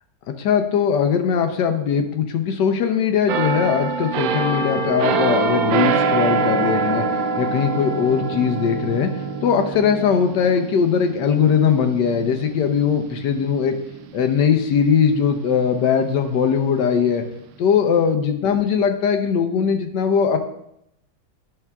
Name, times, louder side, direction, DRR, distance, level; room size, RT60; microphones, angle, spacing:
voice 1, 0.4-7.0 7.4-9.1 9.4-13.8 14.1-17.2 17.6-20.4, left 7 dB, 75° left, 6 dB, 1.3 m, -20 dB
sound 1, 3.3-14.8 15.3-15.5, right 4 dB, 85° right, 1.3 m, -25 dB
10.5 x 5.6 x 2.3 m, 0.78 s
omnidirectional pair, 2.0 m